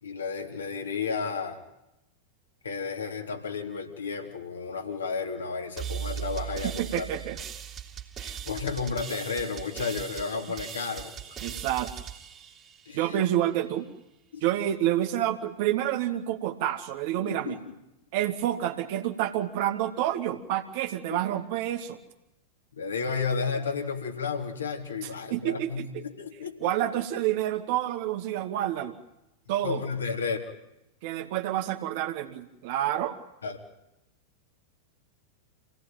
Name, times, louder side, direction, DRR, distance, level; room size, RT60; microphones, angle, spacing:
voice 1, 0.0-1.6 2.6-7.1 8.2-11.1 11.5-11.6 12.9-13.0 14.3-14.4 17.2-17.7 21.1-21.2 22.7-26.7 29.6-30.4 33.4-33.6, left 5 dB, 75° left, 1 dB, 3.7 m, -32 dB
sound 1, 5.8-13.3, right 9 dB, 25° right, 3.1 m, -39 dB
voice 2, 6.8-7.4 11.4-12.0 12.9-13.9 14.4-17.6 18.1-22.0 25.0-26.0 26.6-28.9 29.5-29.8 31.0-33.2, right 12 dB, 50° right, 7 dB, 2.2 m, -28 dB
27.5 x 18.0 x 9.2 m, 0.90 s
figure-of-eight pair, 90°, 0 cm